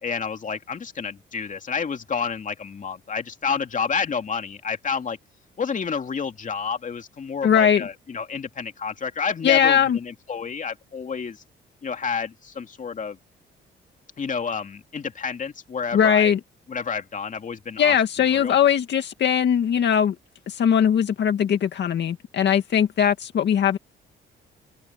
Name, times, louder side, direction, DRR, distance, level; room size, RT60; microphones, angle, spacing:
voice 1, 0.0-5.2 5.6-11.4 11.8-13.2 14.2-16.3 16.7-18.0 18.3-18.5, left 6 dB, 40° left, 2.6 m, -29 dB
voice 2, 7.4-7.9 9.4-10.0 15.9-16.4 17.8-20.2 20.5-23.8, left 8 dB, 60° left, 2.1 m, -20 dB
open air
cardioid pair, 90°, 20 cm